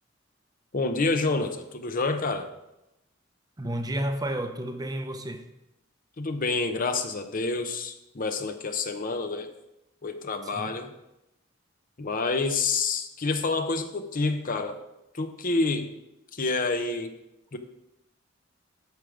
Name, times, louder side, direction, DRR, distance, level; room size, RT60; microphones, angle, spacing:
voice 1, 0.7-2.5 6.2-9.5 10.0-10.9 12.0-14.8 15.1-15.9 16.4-17.1 17.5-17.6, left 3 dB, 45° left, 0.8 m, -28 dB
voice 2, 3.6-5.4 10.5-10.7, right 1 dB, 20° right, 0.7 m, -31 dB
13.0 x 5.1 x 4.9 m
head